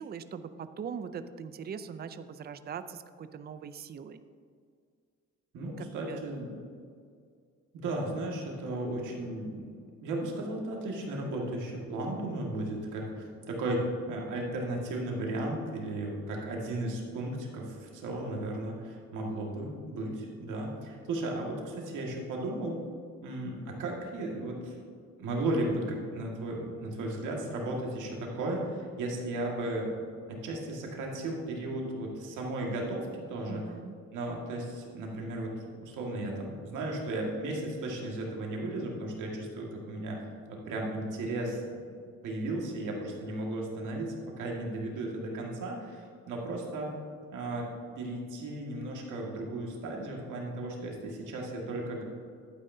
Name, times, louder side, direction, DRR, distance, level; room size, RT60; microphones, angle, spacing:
voice 1, 0.0-4.2 5.8-6.2 33.5-34.0, right 7 dB, 35° right, 11 dB, 0.5 m, -41 dB
voice 2, 5.5-6.5 7.7-9.6 10.0-22.8 23.2-24.8 25.2-29.9 30.3-33.6 34.1-41.9 42.2-47.0 47.3-47.7 48.0-52.0, right 1 dB, 85° right, -1 dB, 2.0 m, -35 dB
11.0 x 9.2 x 2.7 m, 2.2 s
cardioid pair, 90°, 30 cm